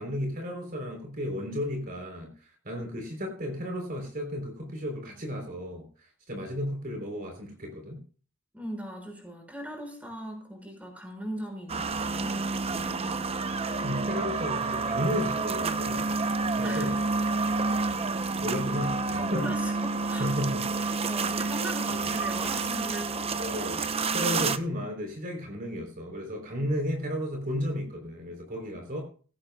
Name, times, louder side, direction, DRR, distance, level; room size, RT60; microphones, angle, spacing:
voice 1, 0.0-8.0 13.8-16.1 16.5-17.0 18.4-19.5 20.2-20.6 21.9-22.0 23.3-23.8 24.1-29.0, equal, 45° right, 2 dB, 3.7 m, -33 dB
voice 2, 8.5-12.4 12.7-13.2 16.6-17.0 19.2-20.3 20.8-23.3, equal, 5° right, 1 dB, 5.8 m, -39 dB
sound 1, 11.7-24.6, right 3 dB, 30° right, 0.7 m, -29 dB
17.0 x 17.0 x 2.3 m, 0.40 s
head